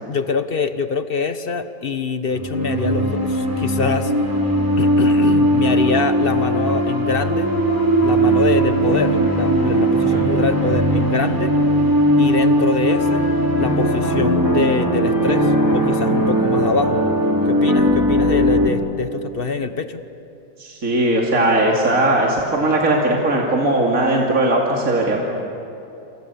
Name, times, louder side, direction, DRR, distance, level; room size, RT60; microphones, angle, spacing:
voice 1, 0.1-4.1 4.8-7.5 8.0-11.5 12.2-13.3 13.6-17.0 17.5-20.0, left 4 dB, 35° left, 10 dB, 1.1 m, -24 dB
sound 1, 2.3-18.7, right 1 dB, 10° right, 3.1 m, -18 dB
voice 2, 20.6-25.2, right 1 dB, 50° right, -2 dB, 3.0 m, -18 dB
28.5 x 27.5 x 7.0 m, 2.9 s
omnidirectional pair, 1.9 m